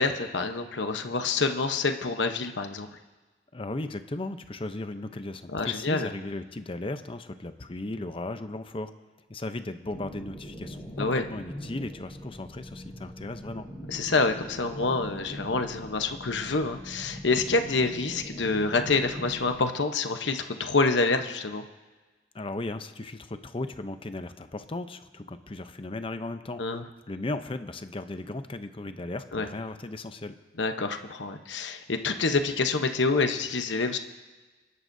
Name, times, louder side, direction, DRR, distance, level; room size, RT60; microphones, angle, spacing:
voice 1, 0.0-2.9 5.5-6.1 11.0-11.2 13.9-21.6 26.6-26.8 29.3-29.5 30.6-34.0, left 3 dB, 85° left, 7 dB, 1.0 m, -27 dB
voice 2, 3.5-8.9 9.3-13.7 22.3-26.8 27.1-30.3, left 2 dB, 30° left, 9 dB, 0.7 m, -36 dB
sound 1, 9.9-19.6, equal, 15° left, 4.6 m, -42 dB
28.5 x 11.0 x 2.7 m, 1.3 s
head